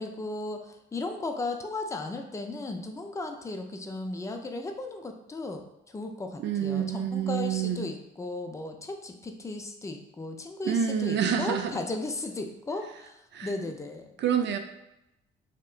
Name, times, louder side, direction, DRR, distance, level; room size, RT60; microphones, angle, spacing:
voice 1, 0.0-14.2, left 2 dB, 15° left, 4 dB, 0.4 m, -36 dB
voice 2, 6.4-7.9 10.6-11.8 13.3-13.5 14.2-14.6, right 8 dB, 65° right, 5 dB, 0.5 m, -27 dB
3.3 x 2.8 x 2.4 m, 0.86 s
cardioid pair, 90°, 20 cm